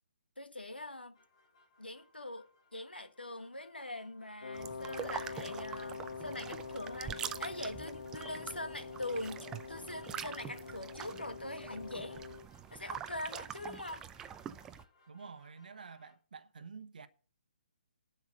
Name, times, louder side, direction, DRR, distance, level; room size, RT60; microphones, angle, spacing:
voice 1, 0.4-1.2 1.8-12.2 12.7-14.1, left 1 dB, 85° left, 1.7 m, -43 dB
sound 1, 1.1-16.2, left 3 dB, 35° left, 3.6 m, -68 dB
Wind instrument woodwind instrument, 4.4-12.5, left 5 dB, 65° left, 0.8 m, -45 dB
sound 2, 4.5-14.8, right 9 dB, 10° right, 0.5 m, -45 dB
voice 2, 15.1-17.1, right 5 dB, 55° right, 1.1 m, -49 dB
11.0 x 5.8 x 7.7 m
figure-of-eight pair, 140°, 5 cm